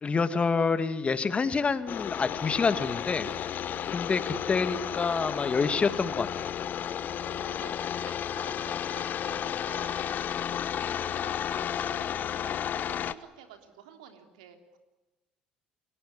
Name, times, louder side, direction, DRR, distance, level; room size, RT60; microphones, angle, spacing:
voice 1, 0.0-3.5 3.9-6.5, left 4 dB, 30° left, 11 dB, 2.1 m, -27 dB
sound 1, 1.9-13.1, left 9 dB, 50° left, 1.2 m, -33 dB
voice 2, 7.0-14.8, right 8 dB, 85° right, 5 dB, 3.4 m, -51 dB
29.5 x 18.0 x 9.8 m, 1.1 s
hypercardioid pair, 60°, 4 cm